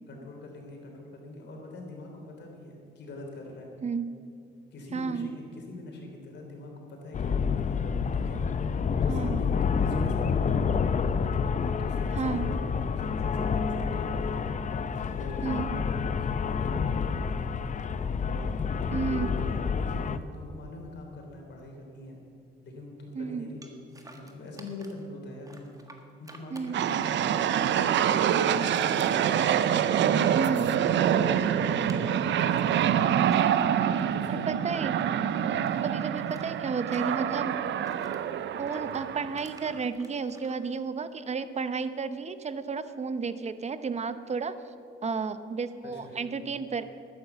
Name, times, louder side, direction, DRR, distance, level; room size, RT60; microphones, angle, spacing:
voice 1, 0.1-3.7 4.7-11.1 11.8-14.5 14.9-17.6 18.2-22.2 22.6-23.8 24.1-25.7 26.2-29.4 29.8-30.6 31.1-31.7 31.9-33.3 33.8-34.8 35.4-35.7 45.8-46.4, left 2 dB, 60° left, 1 dB, 3.5 m, -43 dB
voice 2, 3.8-4.2 4.9-5.3 9.1-9.4 12.1-12.5 15.4-15.8 18.9-19.3 23.1-23.5 26.5-26.8 30.4-30.7 34.5-34.9 35.8-37.5 38.6-44.6 45.0-46.8, right 5 dB, 35° right, 12 dB, 0.8 m, -32 dB
sound 1, 7.1-20.2, left 6 dB, 40° left, 0.6 m, -28 dB
sound 2, 23.6-25.1 25.4-27.6 28.0-30.6 30.8-35.0 35.3-38.2 38.7-40.6, right 2 dB, 15° right, 1.6 m, -52 dB
sound 3, 26.7-39.9, right 9 dB, 65° right, 0.6 m, -26 dB
12.0 x 9.7 x 6.9 m, 2.4 s
cardioid pair, 90°, 20 cm